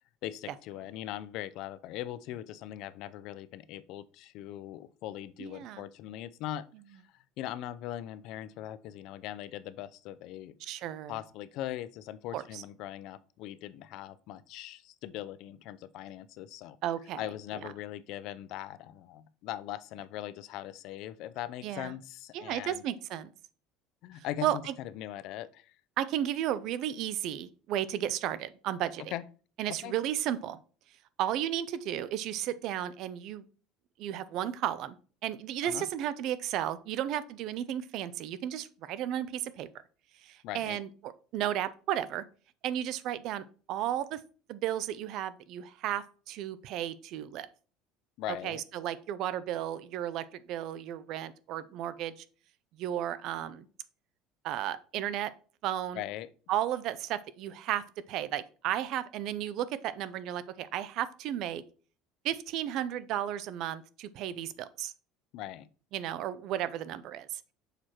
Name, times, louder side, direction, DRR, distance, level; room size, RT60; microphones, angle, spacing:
voice 1, 0.2-10.5 11.1-16.8 17.2-22.8 24.0-25.7 29.1-29.2 29.7-29.9 35.6-35.9 40.4-40.8 48.2-48.6 55.9-56.3 65.3-65.7, left 13 dB, 55° left, 15 dB, 0.5 m, -40 dB
voice 2, 5.4-5.9 10.6-11.2 12.3-12.6 16.8-17.2 21.6-21.9 22.3-23.3 24.4-24.7 26.0-29.0 29.6-30.6 31.2-33.4 34.0-35.0 35.2-39.7 40.2-42.2 42.6-44.2 44.5-47.5 48.4-52.2 52.7-53.7 54.4-55.3 55.6-56.0 56.5-61.6 62.2-64.9 65.9-67.4, right 11 dB, 50° right, 15 dB, 0.5 m, -34 dB
6.6 x 4.6 x 4.3 m, 0.39 s
cardioid pair, 155°, 0 cm